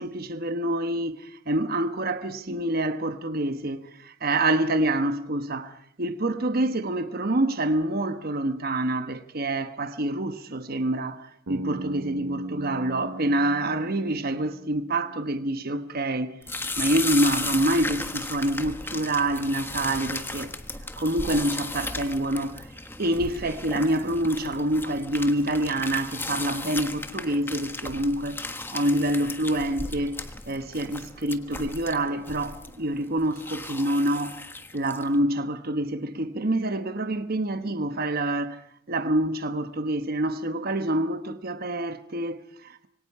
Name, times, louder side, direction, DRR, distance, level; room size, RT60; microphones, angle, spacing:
voice 1, 0.0-16.4 16.8-20.5 21.0-22.7 23.0-28.5 28.7-34.4 34.7-38.6 38.9-42.9, right 1 dB, 45° right, 1.2 m, -27 dB
Bass guitar, 11.5-15.5, right 2 dB, 90° right, 1.0 m, -37 dB
sound 1, 16.4-35.1, left 2 dB, 10° left, 1.4 m, -35 dB
26.5 x 23.5 x 4.8 m
head